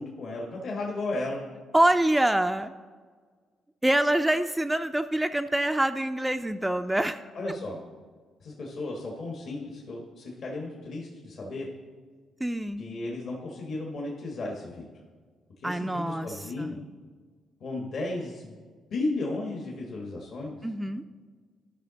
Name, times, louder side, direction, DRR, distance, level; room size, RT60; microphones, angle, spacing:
voice 1, 0.0-1.4 7.3-7.8 8.4-11.7 12.8-14.9 15.6-16.8 17.6-18.6 18.9-20.6, left 2 dB, 60° left, -1 dB, 1.3 m, -34 dB
voice 2, 1.7-2.7 3.8-7.3 12.4-12.8 15.6-16.8 20.6-21.0, right 1 dB, 10° right, 8 dB, 0.3 m, -25 dB
12.5 x 5.5 x 3.9 m, 1.5 s
cardioid pair, 90°, 0 cm